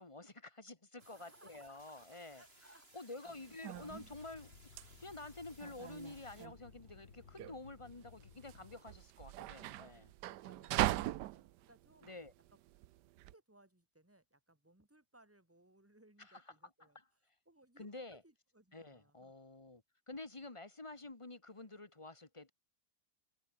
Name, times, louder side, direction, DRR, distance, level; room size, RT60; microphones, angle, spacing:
voice 1, 0.0-2.4 2.9-10.1 12.0-12.3 16.2-16.4 16.9-17.0 17.8-18.2 18.7-22.5, left 2 dB, 20° left, 1.5 m, -50 dB
voice 2, 1.0-3.3 8.5-8.8 10.2-12.1 12.5-12.6 13.3-19.3, right 1 dB, 10° right, 3.5 m, -66 dB
sound 1, 1.0-6.5, right 2 dB, 35° right, 5.7 m, -64 dB
sound 2, 3.3-13.3, right 15 dB, 80° right, 1.2 m, -41 dB
sound 3, 3.7-8.8, left 7 dB, 65° left, 2.0 m, -59 dB
omnidirectional pair, 1.8 m